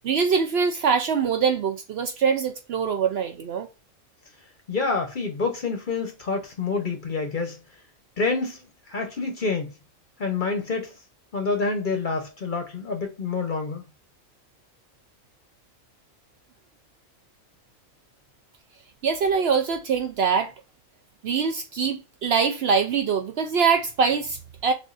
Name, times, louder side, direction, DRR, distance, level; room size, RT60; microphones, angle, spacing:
voice 1, 0.0-3.7 19.0-20.5 21.2-24.7, right 6 dB, 60° right, 0.7 m, -23 dB
voice 2, 4.7-7.6 8.2-8.6 8.9-9.7 10.2-10.9 11.3-13.8, left 4 dB, 45° left, 0.8 m, -27 dB
6.3 x 2.5 x 2.4 m
omnidirectional pair, 1.4 m